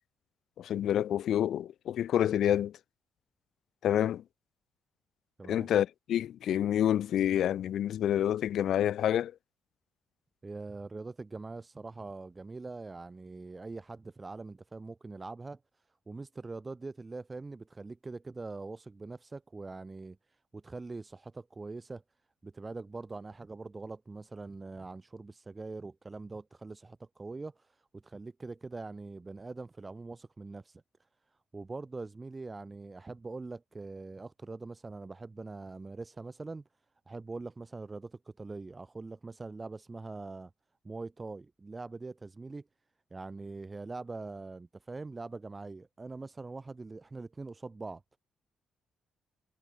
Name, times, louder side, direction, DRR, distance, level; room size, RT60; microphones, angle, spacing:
voice 1, 0.6-2.7 3.8-4.2 5.5-9.3, left 10 dB, 70° left, 1.1 m, -28 dB
voice 2, 10.4-15.6 16.1-22.0 22.4-30.8 31.5-36.6 37.1-40.5 40.8-42.6 43.1-48.2, right 3 dB, 25° right, 4.5 m, -43 dB
cardioid pair, 90°, 0 cm